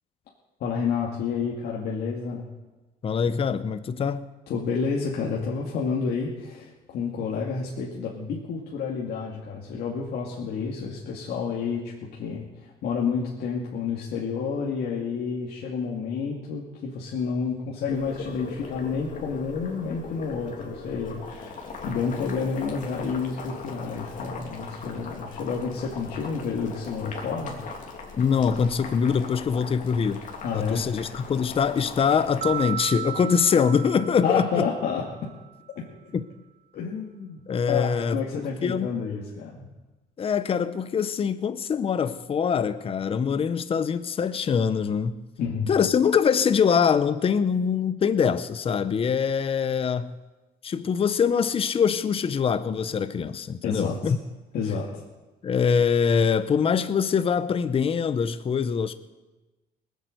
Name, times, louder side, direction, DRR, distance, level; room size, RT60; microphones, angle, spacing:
voice 1, 0.6-2.5 4.5-21.5 21.8-27.6 30.4-30.8 34.2-35.0 36.7-37.4 37.7-39.7 45.4-45.7 53.6-54.1 54.5-55.0, left 5 dB, 65° left, 2.3 m, -29 dB
voice 2, 3.0-4.2 28.2-30.2 30.5-34.6 36.1-36.3 37.5-38.9 40.2-45.1 45.7-50.1 50.6-54.2 55.4-58.9, left 6 dB, 35° left, 0.8 m, -24 dB
Boiling, 17.9-32.7, left 4 dB, 50° left, 3.0 m, -39 dB
sound 1, 32.4-35.5, right 11 dB, 50° right, 0.8 m, -35 dB
19.5 x 8.3 x 7.9 m
cardioid pair, 110°, 17 cm